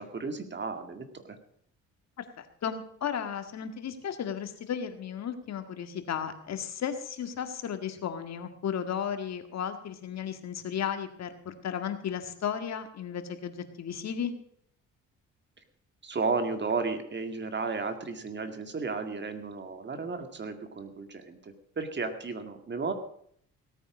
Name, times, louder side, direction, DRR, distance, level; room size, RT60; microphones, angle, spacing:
voice 1, 0.0-1.4 16.0-22.9, right 4 dB, 35° right, 8 dB, 2.1 m, -33 dB
voice 2, 2.2-14.3, left 8 dB, 60° left, 8 dB, 1.8 m, -34 dB
17.5 x 9.1 x 6.2 m, 0.66 s
cardioid pair, 90°, 30 cm